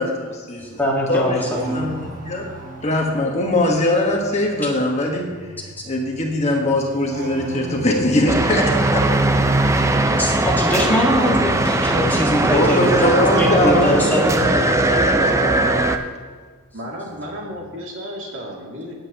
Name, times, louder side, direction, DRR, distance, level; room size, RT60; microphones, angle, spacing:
voice 1, 0.0-0.8 1.1-1.4 1.7-2.5 2.8-5.3 5.8-9.1 12.5-16.0, left 1 dB, 30° left, 0 dB, 1.5 m, -21 dB
voice 2, 0.6-1.7 10.2-14.6, equal, 10° left, -3 dB, 1.8 m, -22 dB
sound 1, 0.6-16.4 16.6-17.5, equal, 40° right, 1.6 m, -36 dB
sound 2, 8.3-16.0, right 2 dB, 15° right, 0.5 m, -19 dB
voice 3, 16.7-18.9, equal, 65° right, -3 dB, 2.6 m, -33 dB
16.5 x 8.8 x 3.0 m, 1.5 s
head